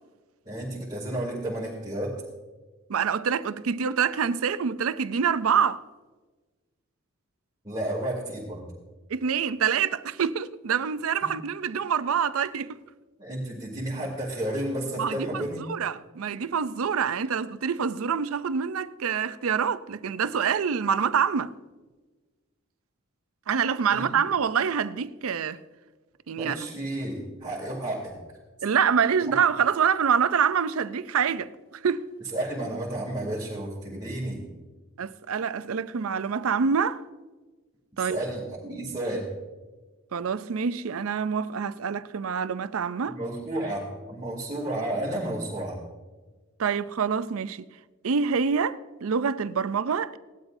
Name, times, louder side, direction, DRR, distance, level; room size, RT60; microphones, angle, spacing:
voice 1, 0.4-2.2 7.6-8.6 11.2-11.3 13.2-15.6 23.9-24.1 26.3-28.1 29.2-29.3 32.3-34.4 38.0-39.3 43.1-45.8, right 1 dB, 20° right, 2.9 m, -32 dB
voice 2, 2.9-5.8 9.1-12.8 15.0-21.5 23.5-25.6 26.3-26.6 28.6-31.5 31.8-32.1 35.0-37.0 38.0-38.2 40.1-43.2 46.6-47.7 48.0-50.2, right 6 dB, 90° right, 0.5 m, -26 dB
18.5 x 12.0 x 2.7 m
head